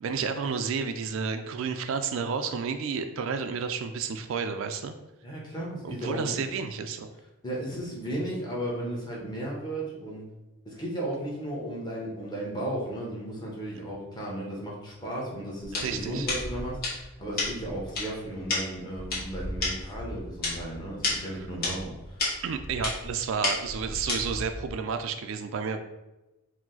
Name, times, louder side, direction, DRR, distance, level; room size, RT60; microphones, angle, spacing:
voice 1, 0.0-4.9 5.8-7.1 15.7-16.3 22.4-25.8, right 5 dB, 65° right, 8 dB, 0.3 m, -31 dB
voice 2, 5.2-6.5 7.4-10.3 10.6-22.2, right 1 dB, 20° left, -4 dB, 1.0 m, -35 dB
sound 1, 15.6-24.7, left 2 dB, 45° left, 1.4 m, -33 dB
4.7 x 2.0 x 3.8 m, 1.0 s
head